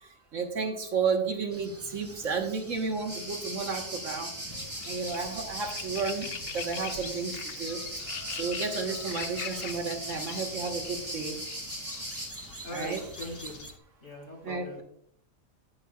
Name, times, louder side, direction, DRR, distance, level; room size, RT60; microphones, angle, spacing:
voice 1, 0.0-4.3 4.8-7.8 8.3-11.4 12.7-13.0 14.4-14.8, right 5 dB, 70° right, 3 dB, 1.7 m, -32 dB
sound 1, 1.5-13.7, right 2 dB, 15° right, 0.7 m, -48 dB
sound 2, 3.1-12.3, right 1 dB, 30° right, 3.9 m, -39 dB
sound 3, 4.5-13.8, left 8 dB, 60° left, 0.8 m, -43 dB
voice 2, 12.6-13.6 14.0-14.8, left 1 dB, 80° left, -1 dB, 3.3 m, -40 dB
16.5 x 6.4 x 2.4 m, 0.65 s
omnidirectional pair, 1.4 m